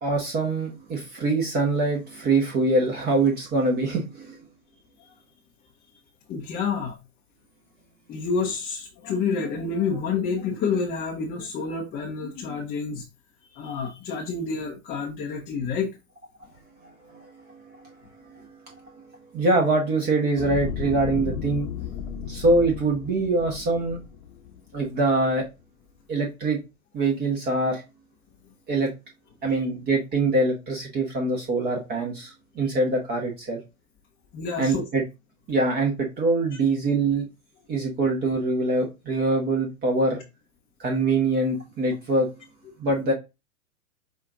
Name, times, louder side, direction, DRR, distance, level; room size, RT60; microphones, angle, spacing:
voice 1, 0.0-4.4 16.8-17.3 17.6-17.8 18.3-18.4 19.3-21.7 22.3-24.0 24.7-25.5 26.1-26.6 26.9-27.8 28.7-28.9 29.4-33.6 34.6-35.0 35.5-37.3 37.7-40.2 40.8-42.3 42.8-43.1, right 2 dB, 25° right, 1.0 m, -24 dB
voice 2, 6.3-7.0 8.1-13.1 13.5-16.0 29.4-29.6 34.3-34.9, left 5 dB, 20° left, 0.6 m, -29 dB
sound 1, 20.4-24.9 25.4-25.5, left 8 dB, 50° left, 0.9 m, -34 dB
5.7 x 2.4 x 3.8 m
hypercardioid pair, 110°, 43 cm